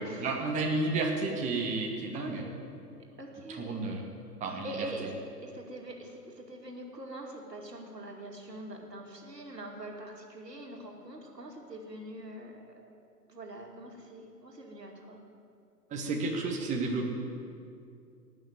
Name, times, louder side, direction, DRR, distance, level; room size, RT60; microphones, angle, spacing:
voice 1, 0.0-2.4 3.5-4.7 15.9-17.1, right 3 dB, 15° right, 0 dB, 1.5 m, -32 dB
voice 2, 2.1-2.6 3.2-3.8 4.5-5.1 5.4-12.9 13.3-15.2, right 1 dB, 80° right, 1 dB, 2.4 m, -43 dB
18.0 x 6.2 x 9.4 m, 2.5 s
figure-of-eight pair, 115°, 48 cm